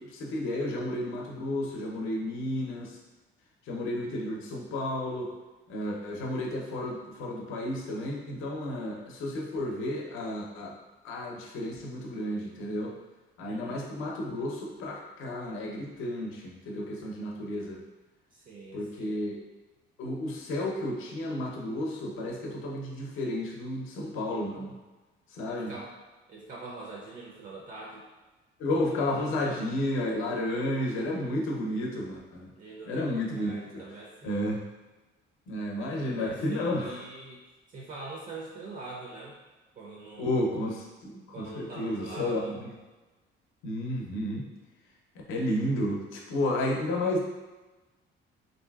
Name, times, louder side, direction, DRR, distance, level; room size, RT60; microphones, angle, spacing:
voice 1, 0.0-3.0 3.7-5.3 5.7-10.7 11.0-12.9 13.4-17.8 18.7-19.4 20.0-24.7 25.3-25.7 28.6-32.5 32.9-33.6 34.2-34.6 35.5-37.0 40.2-42.7 43.6-44.4 45.3-47.2, left 1 dB, 80° left, -1 dB, 0.6 m, -32 dB
voice 2, 13.5-13.9 18.3-19.3 25.5-26.0 26.3-28.0 28.9-29.7 32.6-34.5 35.8-37.4 37.7-39.4 39.7-40.5 41.3-42.6, right 3 dB, 40° right, -3 dB, 0.4 m, -44 dB
3.2 x 2.6 x 2.3 m, 1.2 s
cardioid pair, 150°, 21 cm